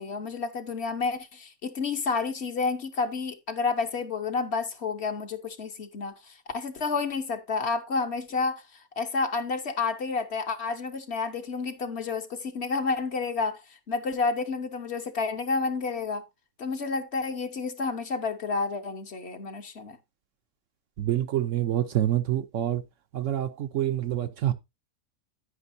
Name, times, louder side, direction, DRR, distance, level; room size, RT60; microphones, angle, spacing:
voice 1, 0.0-16.2 16.6-20.0, left 4 dB, 50° left, 1.2 m, -30 dB
voice 2, 21.0-22.8 23.1-24.5, right 12 dB, 65° right, 1.0 m, -27 dB
9.8 x 9.1 x 2.6 m
omnidirectional pair, 1.5 m